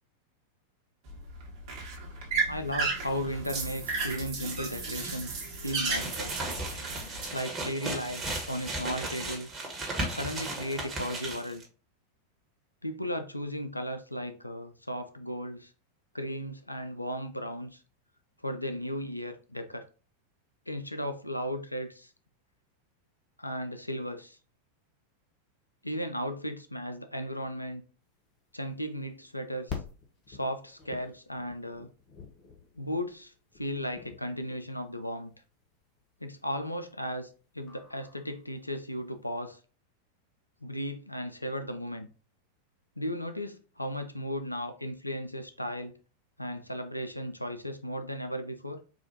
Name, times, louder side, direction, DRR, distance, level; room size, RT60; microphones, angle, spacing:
sound 1, 1.1-7.3, right 4 dB, 45° right, 1.2 m, -34 dB
voice 1, 2.5-6.4 7.3-9.5 10.1-11.6 12.8-15.7 16.1-17.8 18.4-19.9 20.7-22.1 23.4-24.4 25.8-27.8 28.5-29.8 30.3-31.9 32.8-35.3 36.2-37.3 37.5-39.6 40.6-42.1 43.0-45.9 46.4-48.8, equal, 85° left, 0.4 m, -35 dB
sound 2, 5.7-11.6, right 2 dB, 20° right, 1.3 m, -36 dB
sound 3, 28.2-39.3, left 6 dB, 40° left, 0.8 m, -47 dB
4.1 x 2.4 x 2.9 m
figure-of-eight pair, 90°, 0 cm